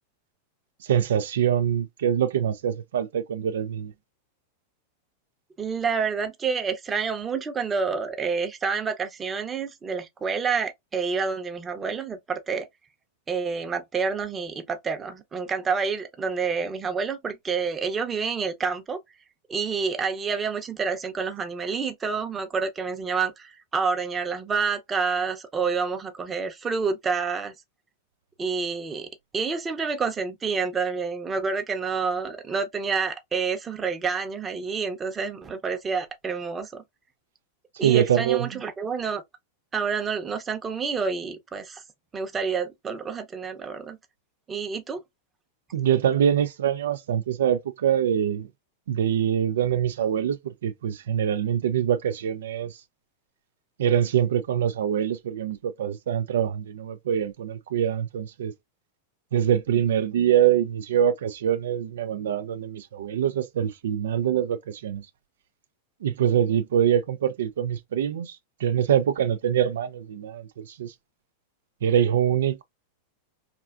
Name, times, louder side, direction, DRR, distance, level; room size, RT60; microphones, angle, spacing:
voice 1, 0.8-3.9 37.8-38.5 45.7-48.5 48.9-52.8 53.8-58.5 59.3-65.0 66.0-70.9 71.8-72.6, right 9 dB, 80° right, 0.3 m, -24 dB
voice 2, 5.6-12.7 13.3-19.0 19.5-27.5 28.4-36.8 37.8-39.2 39.7-41.8 42.1-44.0 44.5-45.0, right 5 dB, 20° right, 0.7 m, -28 dB
3.3 x 2.4 x 2.4 m
hypercardioid pair, 120°, 0 cm